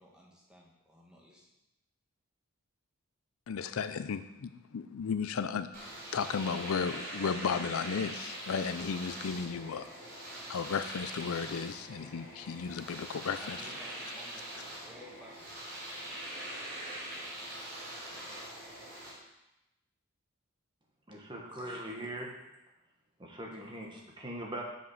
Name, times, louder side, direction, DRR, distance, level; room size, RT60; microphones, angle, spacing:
voice 1, 0.0-1.5 13.4-15.5 23.5-23.8, left 1 dB, 5° right, -3 dB, 1.6 m, -55 dB
voice 2, 3.5-5.7 6.1-9.9 10.5-13.6, left 6 dB, 75° left, 11 dB, 0.4 m, -34 dB
Domestic sounds home sounds, 5.7-19.1, right 1 dB, 45° right, 3.3 m, -43 dB
voice 3, 21.1-22.3 23.2-24.6, right 1 dB, 20° right, -1 dB, 1.3 m, -41 dB
7.3 x 5.7 x 6.4 m, 0.92 s
head